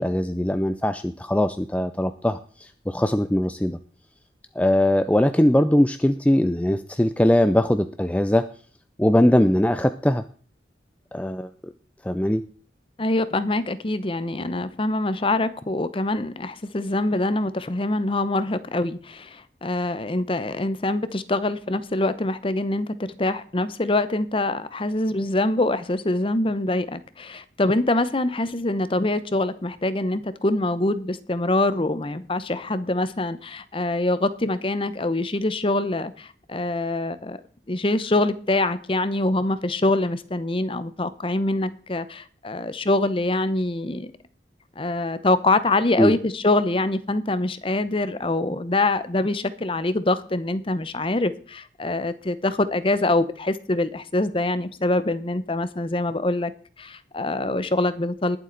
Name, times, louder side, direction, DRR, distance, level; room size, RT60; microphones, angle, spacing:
voice 1, 0.0-3.8 4.6-8.5 9.0-10.2 11.1-11.7 12.0-12.4 46.0-46.1, left 1 dB, 10° left, 10 dB, 0.4 m, -21 dB
voice 2, 13.0-37.4 37.7-44.1 44.8-56.5 56.8-58.4, left 2 dB, 30° left, 14 dB, 0.8 m, -24 dB
20.0 x 7.6 x 4.0 m, 0.43 s
head